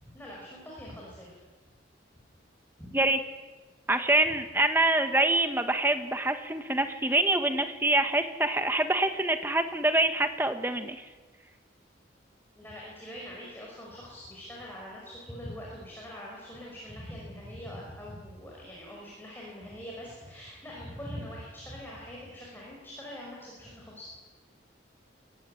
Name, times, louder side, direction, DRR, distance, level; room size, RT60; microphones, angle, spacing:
voice 1, 0.0-1.3 2.8-3.0 12.6-24.2, equal, 10° left, -4 dB, 5.4 m, -43 dB
voice 2, 3.9-11.0, right 2 dB, 10° right, 7 dB, 1.3 m, -25 dB
23.0 x 15.0 x 9.8 m, 1.3 s
head